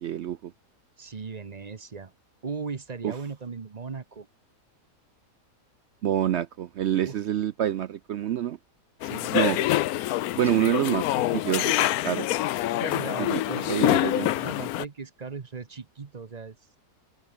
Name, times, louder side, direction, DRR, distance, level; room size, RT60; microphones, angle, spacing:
voice 1, 0.0-0.5 3.0-3.1 6.0-8.6 9.3-9.6 10.4-11.0 11.3-12.3 13.2-13.4 13.7-14.3, right 11 dB, 70° right, 0.6 m, -27 dB
voice 2, 1.0-2.1 2.4-4.3 7.0-7.2 9.0-9.7 10.4-10.7 12.8-14.0 14.3-16.6, right 5 dB, 35° right, 0.8 m, -38 dB
sound 1, 9.0-14.8, left 15 dB, 70° left, 1.0 m, -26 dB
open air
omnidirectional pair, 1.7 m